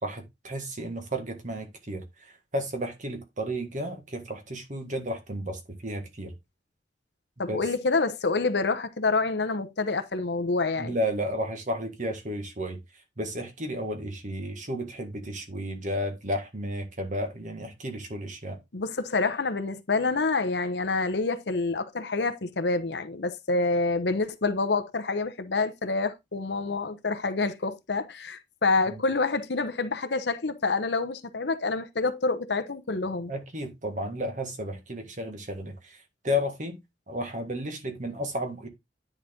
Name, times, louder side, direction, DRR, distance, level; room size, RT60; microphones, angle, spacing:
voice 1, 0.0-6.3 7.5-7.6 10.8-12.8 13.2-18.6 28.9-29.0 33.3-36.0 36.2-36.8 37.1-38.7, equal, 45° right, 1.8 m, -33 dB
voice 2, 7.4-11.0 18.7-33.3, left 3 dB, 70° left, 0.9 m, -27 dB
9.9 x 4.3 x 3.8 m
head